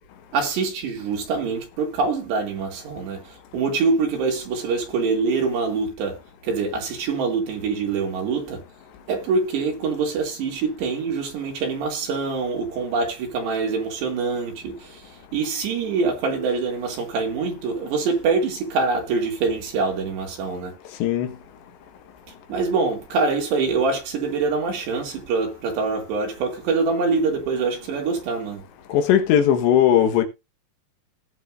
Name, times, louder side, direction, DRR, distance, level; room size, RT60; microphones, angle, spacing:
voice 1, 0.3-6.2 6.4-8.6 9.1-15.0 15.3-20.7 22.5-28.6, right 4 dB, 75° right, 4.9 m, -24 dB
voice 2, 21.0-21.4 28.9-30.2, left 10 dB, 80° left, 3.5 m, -18 dB
18.5 x 7.0 x 2.6 m
omnidirectional pair, 5.1 m